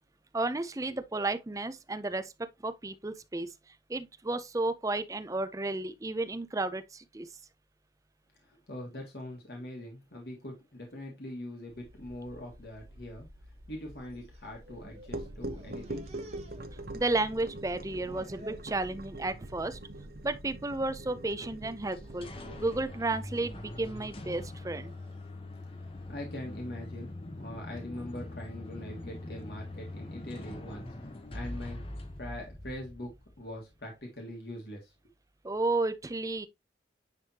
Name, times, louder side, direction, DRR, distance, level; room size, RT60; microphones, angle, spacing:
voice 1, 0.3-2.3 2.6-3.5 3.9-7.3 16.9-19.8 20.2-22.3 22.6-24.9 35.4-36.5, right 2 dB, 20° right, 0.5 m, -32 dB
voice 2, 8.4-13.3 13.7-16.1 25.7-31.8 32.2-33.1 33.4-34.9, left 1 dB, 65° left, 1.7 m, -42 dB
sound 1, 11.7-22.8, right 1 dB, 55° right, 0.8 m, -44 dB
sound 2, 14.0-15.1 15.4-17.3 17.6-18.7 19.2-19.6 19.9-20.1 20.9-21.3 21.8-22.2 23.0-25.2, right 1 dB, 35° right, 1.5 m, -54 dB
sound 3, 21.9-33.6, left 1 dB, 30° left, 0.8 m, -43 dB
9.7 x 3.5 x 2.8 m
head